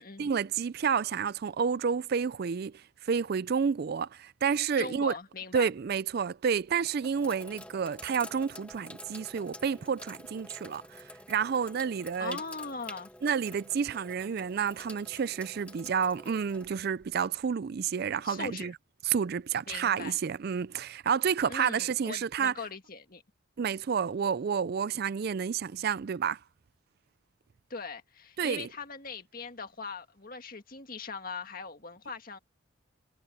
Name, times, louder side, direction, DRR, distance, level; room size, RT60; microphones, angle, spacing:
voice 1, 0.2-5.1 5.5-12.4 13.2-18.7 19.0-22.5 23.6-26.4 28.4-28.7, right 6 dB, 50° right, 0.4 m, -30 dB
voice 2, 4.8-5.7 12.2-13.1 18.2-18.7 19.7-20.2 21.5-23.2 27.7-32.4, left 4 dB, 45° left, 1.8 m, -40 dB
Sink (filling or washing), 5.8-6.0 6.6-17.5, left 1 dB, 5° left, 1.7 m, -49 dB
head